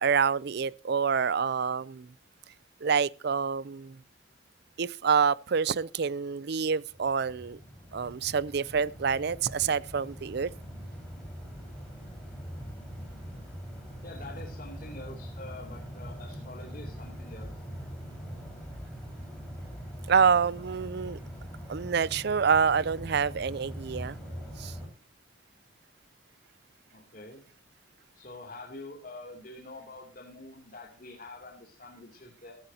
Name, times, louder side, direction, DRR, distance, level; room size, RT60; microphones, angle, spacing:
voice 1, 0.0-2.1 2.8-4.0 4.8-7.6 7.9-10.5 20.1-21.2 21.7-24.2 24.6-24.7, right 6 dB, 55° right, 0.5 m, -27 dB
sound 1, 6.8-24.9, equal, 5° left, 5.1 m, -42 dB
voice 2, 14.0-17.5 26.9-27.4 28.1-32.6, left 2 dB, 45° left, 2.9 m, -46 dB
16.5 x 12.0 x 2.8 m
head